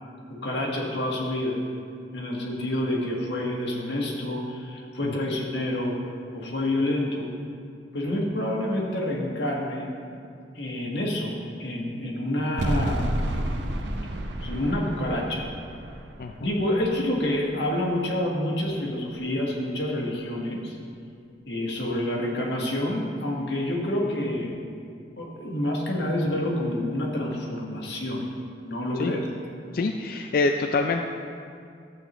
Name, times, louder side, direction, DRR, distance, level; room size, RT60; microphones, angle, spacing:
voice 1, 0.3-1.6 2.1-6.0 6.3-7.3 7.9-9.9 10.5-13.1 14.4-15.4 16.4-20.8 21.5-24.6 25.2-28.3 28.7-29.2, left 1 dB, 75° left, -2 dB, 1.6 m, -28 dB
sound 1, 12.6-17.7, right 1 dB, 75° right, 0.7 m, -31 dB
voice 2, 16.2-16.5 28.9-29.1 29.7-31.0, left 3 dB, 55° left, 4 dB, 0.4 m, -26 dB
12.5 x 8.0 x 3.0 m, 2.3 s
head